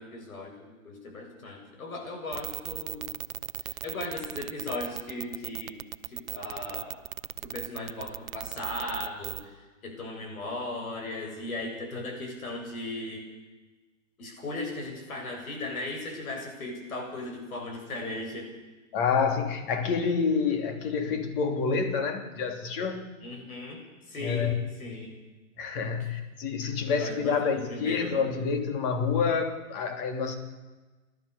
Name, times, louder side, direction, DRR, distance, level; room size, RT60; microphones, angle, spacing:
voice 1, 0.0-3.1 3.6-5.8 6.1-7.0 7.3-13.3 14.2-18.5 23.2-24.5 24.8-25.2 26.9-28.2, left 2 dB, 90° left, 3 dB, 7.5 m, -37 dB
sound 1, 2.3-9.4, right 12 dB, 80° right, 0.8 m, -37 dB
voice 2, 18.9-23.1 24.2-24.6 25.6-30.4, left 5 dB, 40° left, 6 dB, 3.1 m, -28 dB
29.5 x 13.0 x 6.9 m, 1.2 s
hypercardioid pair, 150°, 41 cm